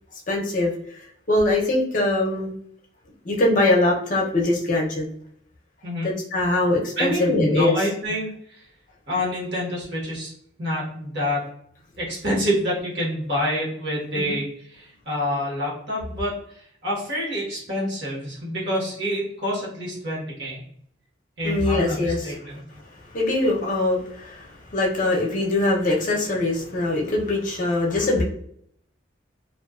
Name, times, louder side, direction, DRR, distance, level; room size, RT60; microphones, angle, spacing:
voice 1, 0.3-1.0 1.3-2.5 3.2-5.1 6.0-7.8 14.2-14.3 21.4-22.3 23.1-28.2, left 2 dB, 40° left, -2 dB, 0.6 m, -22 dB
voice 2, 7.0-8.6 9.1-10.3 10.6-11.5 12.0-20.6 21.4-22.6, equal, 60° right, -5 dB, 1.1 m, -27 dB
2.4 x 2.2 x 2.3 m, 0.67 s
head